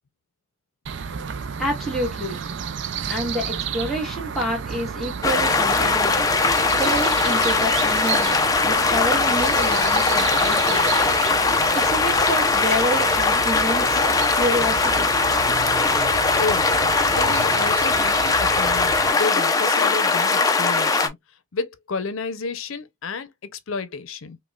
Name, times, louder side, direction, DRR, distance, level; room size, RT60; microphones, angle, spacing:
sound 1, 0.9-19.1, right 7 dB, 55° right, 0.4 m, -31 dB
voice 1, 1.6-2.4 3.1-6.2 6.7-8.4 8.6-11.0 11.7-14.0 14.3-15.1, equal, ahead, 1.2 m, -28 dB
sound 2, 5.2-21.1, left 4 dB, 15° left, 0.4 m, -20 dB
voice 2, 16.1-16.8 17.1-21.2 21.5-24.4, left 4 dB, 75° left, 0.6 m, -31 dB
5.1 x 2.2 x 2.3 m
head